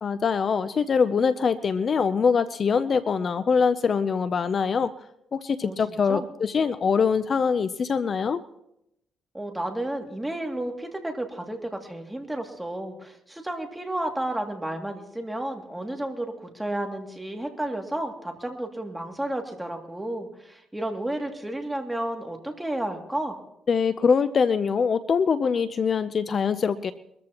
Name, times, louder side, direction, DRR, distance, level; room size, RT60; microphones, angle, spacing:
voice 1, 0.0-4.9 5.3-8.4 23.7-26.9, left 6 dB, 45° left, 13 dB, 0.6 m, -23 dB
voice 2, 5.6-6.3 9.3-23.4, right 1 dB, 10° right, 3 dB, 2.4 m, -32 dB
23.5 x 14.0 x 3.0 m, 0.81 s
cardioid pair, 90°, 0 cm